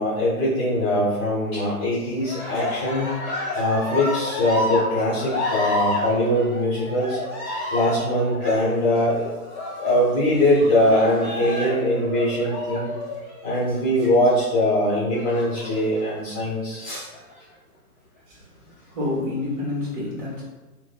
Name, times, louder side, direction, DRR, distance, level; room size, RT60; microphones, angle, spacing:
voice 1, 0.0-3.1 3.5-7.2 7.7-9.3 9.7-12.9 13.4-17.1, left 1 dB, 25° left, -8 dB, 0.8 m, -22 dB
Cheering, 2.2-13.9 15.1-16.0 16.7-17.4, left 1 dB, 5° right, 0.9 m, -30 dB
voice 2, 18.9-20.4, left 2 dB, 30° right, -6 dB, 1.3 m, -28 dB
3.4 x 2.2 x 2.2 m, 1.2 s
hypercardioid pair, 135°, 47 cm